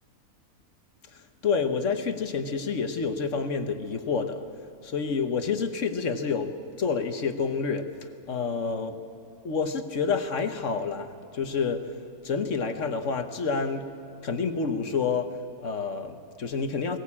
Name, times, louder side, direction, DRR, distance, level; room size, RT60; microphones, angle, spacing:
voice 1, 1.1-4.4 4.8-8.0 8.3-9.0 9.4-11.9 12.2-14.0 14.2-17.0, left 5 dB, 55° left, 7 dB, 1.4 m, -29 dB
21.0 x 18.0 x 8.6 m, 2.3 s
omnidirectional pair, 1.6 m